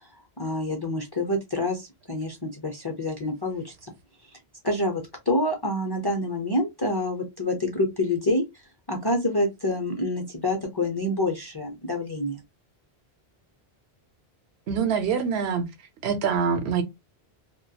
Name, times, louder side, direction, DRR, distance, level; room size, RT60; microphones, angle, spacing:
voice 1, 0.4-3.7 4.6-8.4 8.9-12.4, left 1 dB, 30° left, 0.5 m, -27 dB
voice 2, 14.7-15.7 16.0-16.8, right 6 dB, 80° right, 0.8 m, -24 dB
2.3 x 2.1 x 2.7 m
omnidirectional pair, 1.1 m